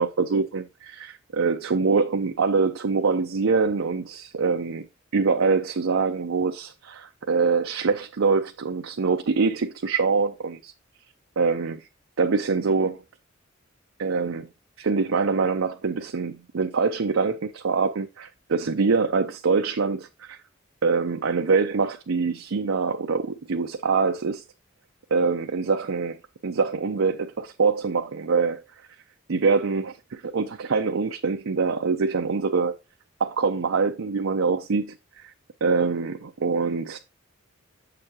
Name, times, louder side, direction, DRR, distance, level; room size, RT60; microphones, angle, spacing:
voice 1, 0.0-4.8 5.1-10.7 11.4-11.8 12.2-13.0 14.0-14.5 14.8-20.4 20.8-24.4 25.1-26.2 26.4-28.6 29.3-32.7 33.2-34.9 35.2-35.3 35.6-37.0, right 4 dB, 75° right, 0.6 m, -24 dB
7.6 x 6.7 x 2.9 m
head